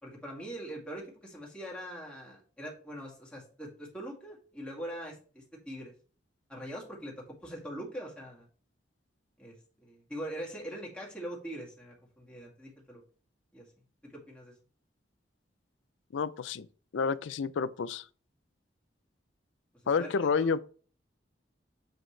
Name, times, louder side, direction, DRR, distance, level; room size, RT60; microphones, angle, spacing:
voice 1, 0.0-5.9 6.5-7.1 7.4-8.5 9.4-13.0 13.5-13.6 14.0-14.5 20.0-20.6, right 1 dB, 5° left, 2.1 m, -42 dB
voice 2, 16.1-16.7 16.9-18.0 19.9-20.6, left 5 dB, 90° left, 0.4 m, -29 dB
7.7 x 5.1 x 3.2 m
head